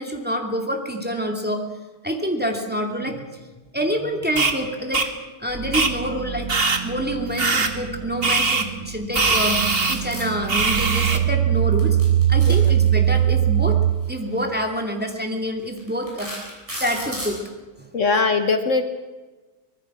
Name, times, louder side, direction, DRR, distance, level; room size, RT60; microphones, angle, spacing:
voice 1, 0.0-1.7 2.0-3.3 3.7-5.1 5.4-6.5 6.8-12.0 12.3-13.8 14.1-16.3 16.8-17.4 17.8-17.9, equal, 5° right, 2 dB, 2.5 m, -27 dB
sound 1, 4.4-4.5 4.9-5.1 5.7-5.9 6.5-6.8 7.4-7.7 8.2-8.6 9.1-10.0 10.5-11.2, right 3 dB, 40° right, 1.8 m, -21 dB
sound 2, 5.5-13.9, right 10 dB, 85° right, 1.4 m, -22 dB
sound 3, 9.5-10.3 11.7-13.2 14.3-14.5 15.1-15.2 15.8-17.4, equal, 20° right, 7.6 m, -34 dB
voice 2, 17.9-18.9, left 4 dB, 60° left, 8 dB, 1.5 m, -20 dB
24.5 x 20.0 x 6.1 m, 1.2 s
omnidirectional pair, 1.5 m